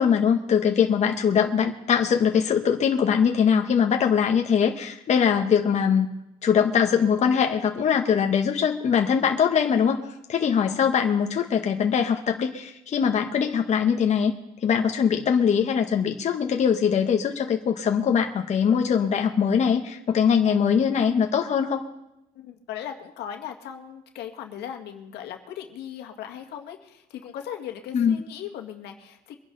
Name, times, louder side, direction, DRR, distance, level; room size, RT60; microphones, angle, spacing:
voice 1, 0.0-6.1 6.4-10.0 10.3-14.3 14.6-21.8 27.9-28.2, left 7 dB, 45° left, 3 dB, 1.1 m, -22 dB
voice 2, 10.4-10.8 22.3-29.4, left 9 dB, 75° left, 4 dB, 1.8 m, -38 dB
23.5 x 11.0 x 3.9 m, 0.91 s
cardioid pair, 110°, 17 cm